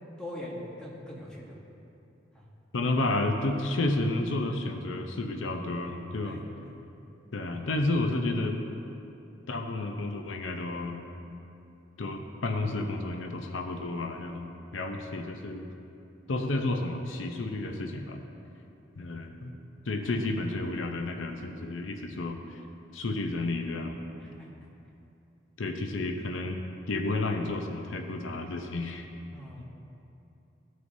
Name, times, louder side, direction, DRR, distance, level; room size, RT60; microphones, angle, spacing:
voice 1, 0.2-1.6 2.3-2.4 6.2-6.7 20.2-20.3 24.2-24.5 29.3-29.7, left 1 dB, 5° left, -5 dB, 1.2 m, -42 dB
voice 2, 2.7-6.4 7.3-8.6 9.5-11.0 12.0-14.4 14.7-15.7 16.3-18.2 18.9-19.5 19.9-22.6 22.9-24.0 25.6-26.6 26.9-29.0 29.6-29.7, left 2 dB, 85° left, 5 dB, 0.6 m, -31 dB
14.5 x 6.3 x 2.7 m, 2.8 s
head